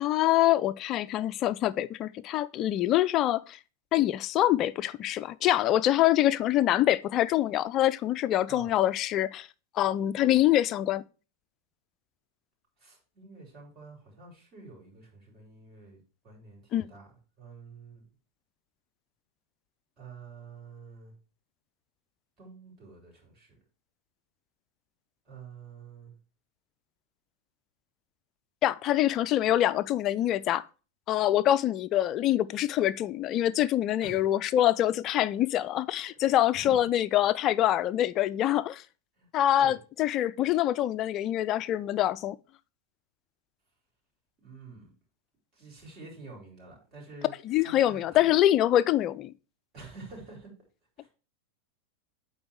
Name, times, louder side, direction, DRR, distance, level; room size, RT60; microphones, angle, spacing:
voice 1, 0.0-3.6 3.9-9.5 9.8-11.0 16.7-16.9 28.6-30.6 31.1-38.8 39.3-42.4 47.4-49.3, left 13 dB, 35° left, 0.4 m, -25 dB
voice 2, 12.8-16.6 16.9-17.1 17.4-18.0 20.0-21.1 22.4-23.6 25.3-26.1 34.0-34.3 36.4-36.8 39.2-39.8 44.4-44.9 45.5-48.3 49.7-50.5 51.0-51.1, right 3 dB, 35° right, 4.2 m, -48 dB
8.7 x 4.0 x 4.5 m
figure-of-eight pair, 90°, 0 cm